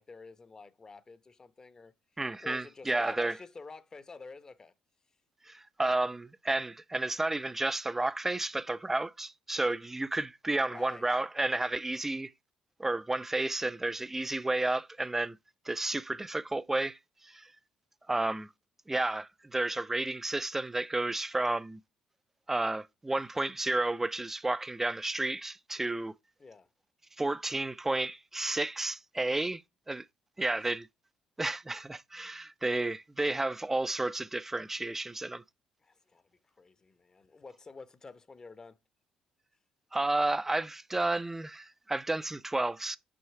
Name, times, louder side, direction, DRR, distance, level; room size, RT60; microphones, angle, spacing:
voice 1, 0.0-1.9 2.4-4.7 10.7-11.1 26.4-26.7 30.6-30.7 35.8-38.8, left 4 dB, 30° left, 0.9 m, -49 dB
voice 2, 2.2-3.4 5.5-12.3 12.8-15.4 15.7-17.0 17.2-17.5 18.1-18.5 18.9-21.8 22.5-26.1 27.2-29.6 29.9-30.0 30.4-30.9 31.4-35.4 39.9-43.0, right 2 dB, 15° right, 0.5 m, -31 dB
6.3 x 5.5 x 4.6 m
hypercardioid pair, 55°, 2 cm